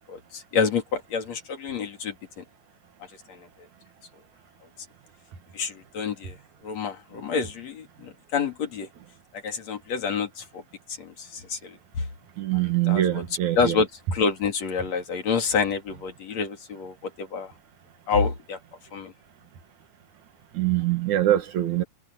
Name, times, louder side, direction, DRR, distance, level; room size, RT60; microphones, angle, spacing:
voice 1, 0.1-2.4 3.3-3.5 5.5-6.4 6.6-8.9 9.3-10.6 11.0-12.0 12.5-13.3 13.6-17.5 18.1-18.6 18.9-19.1, left 5 dB, 65° left, 3.9 m, -28 dB
voice 2, 12.4-13.6 20.5-21.8, right 13 dB, 75° right, 3.1 m, -23 dB
omnidirectional pair, 3.3 m